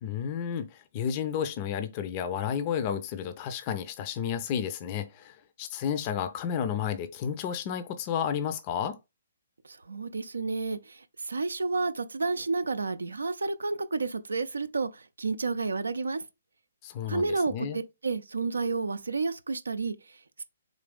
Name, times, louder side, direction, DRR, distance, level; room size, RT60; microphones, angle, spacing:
voice 1, 0.0-9.0 16.8-17.8, left 8 dB, 35° left, 0.5 m, -32 dB
voice 2, 9.6-16.2 17.1-20.4, right 3 dB, 75° right, 0.4 m, -31 dB
3.9 x 3.0 x 3.4 m
figure-of-eight pair, 130°, 0 cm